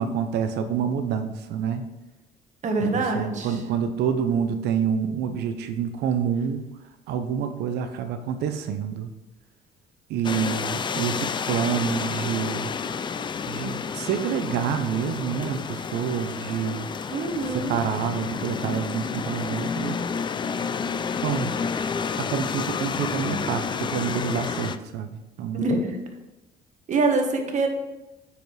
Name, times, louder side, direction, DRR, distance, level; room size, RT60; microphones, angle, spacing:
voice 1, 0.0-1.8 2.8-6.6 7.1-9.1 10.1-12.7 13.5-16.9 17.4-20.0 21.2-21.6 22.2-25.6, right 7 dB, 80° right, 8 dB, 0.7 m, -27 dB
voice 2, 2.6-3.5 17.1-17.8 25.5-25.9 26.9-27.7, right 3 dB, 45° right, 3 dB, 1.6 m, -24 dB
sound 1, 10.2-24.8, left 6 dB, 25° left, 0.4 m, -30 dB
9.3 x 5.2 x 4.8 m, 1.0 s
cardioid pair, 110°, 17 cm